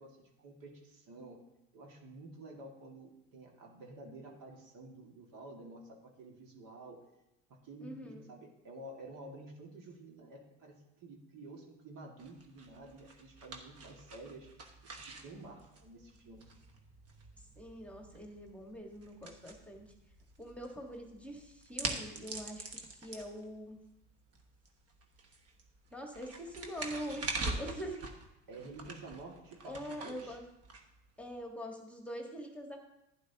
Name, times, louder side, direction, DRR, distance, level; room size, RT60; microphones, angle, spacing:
voice 1, 0.0-1.4 1.7-7.1 7.5-14.5 14.8-16.5 28.5-30.4, right 2 dB, 55° right, 1 dB, 2.3 m, -51 dB
voice 2, 7.8-8.3 17.4-19.9 20.4-23.8 25.9-28.1 29.6-30.4 31.2-32.8, equal, 5° left, 1 dB, 1.6 m, -44 dB
sound 1, 12.2-31.4, right 3 dB, 40° right, 1.6 m, -45 dB
11.5 x 10.5 x 2.9 m, 0.90 s
hypercardioid pair, 80°, 38 cm